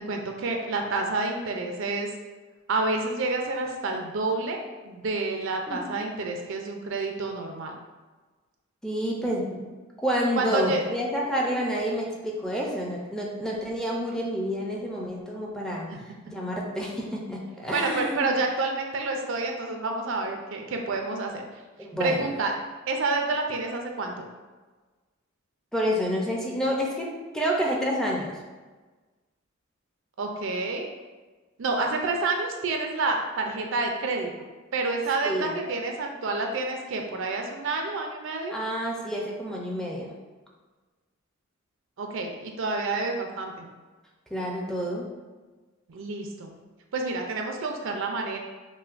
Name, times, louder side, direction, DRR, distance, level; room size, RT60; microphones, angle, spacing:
voice 1, 0.1-2.1 2.7-4.6 4.8-7.8 10.3-10.8 15.9-16.0 17.7-21.4 22.0-22.5 22.9-24.3 30.2-30.9 31.6-34.3 34.7-38.6 42.0-43.7 45.9-46.5 46.9-48.4, right 3 dB, 65° right, 3 dB, 0.5 m, -29 dB
voice 2, 8.8-9.6 10.0-15.9 16.3-18.3 21.8-22.3 25.7-28.4 35.2-35.5 38.5-40.1 44.3-45.1, equal, 5° left, -3 dB, 0.5 m, -29 dB
5.5 x 2.2 x 2.5 m, 1.3 s
head